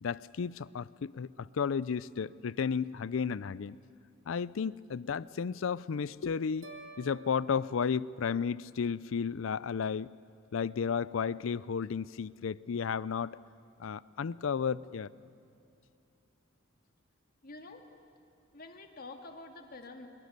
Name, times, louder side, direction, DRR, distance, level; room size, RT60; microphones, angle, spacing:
voice 1, 0.0-3.8 4.3-6.7 7.0-10.1 10.5-13.4 13.8-15.1, left 6 dB, 80° left, 20 dB, 0.4 m, -33 dB
sound 1, 6.6-8.9, right 2 dB, 85° right, 2.3 m, -52 dB
voice 2, 17.4-17.8 18.5-20.1, left 3 dB, 50° left, 5 dB, 1.8 m, -47 dB
23.0 x 22.5 x 6.7 m, 2.6 s
head